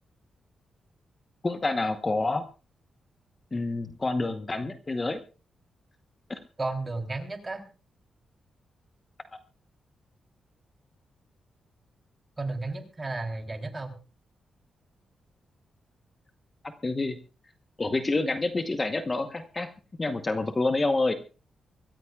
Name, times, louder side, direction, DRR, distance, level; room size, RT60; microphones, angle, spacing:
voice 1, 1.4-2.4 3.5-5.2 6.3-6.4 16.8-17.2 17.8-19.7 20.0-21.1, left 2 dB, 25° left, 7 dB, 1.0 m, -27 dB
voice 2, 6.6-7.6 12.4-14.0, right 3 dB, 25° right, 3 dB, 3.3 m, -33 dB
24.5 x 14.0 x 2.3 m, 0.35 s
wide cardioid pair, 125°, 0 cm